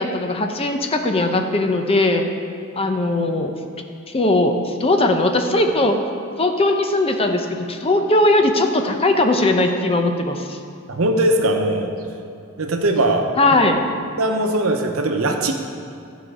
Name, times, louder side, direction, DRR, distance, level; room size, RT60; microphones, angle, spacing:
voice 1, 0.0-2.3 2.7-3.5 4.1-6.0 6.4-10.6 13.4-13.8, left 2 dB, 25° left, 5 dB, 0.7 m, -19 dB
voice 2, 10.9-11.9 12.6-13.3 14.2-15.5, right 1 dB, 75° right, 4 dB, 0.9 m, -20 dB
14.0 x 5.1 x 5.0 m, 2.5 s
head